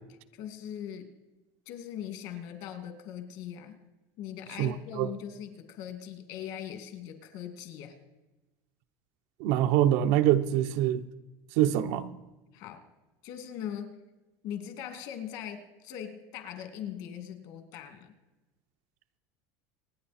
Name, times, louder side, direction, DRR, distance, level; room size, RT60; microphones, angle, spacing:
voice 1, 0.3-1.1 1.7-3.8 4.2-8.0 12.5-12.8 13.2-13.9 14.4-18.1, left 9 dB, 55° left, 7 dB, 2.4 m, -40 dB
voice 2, 4.6-5.1 9.4-11.0 11.6-12.1, right 12 dB, 65° right, 8 dB, 0.9 m, -25 dB
27.0 x 9.7 x 4.3 m, 1.1 s
cardioid pair, 165°, 8 cm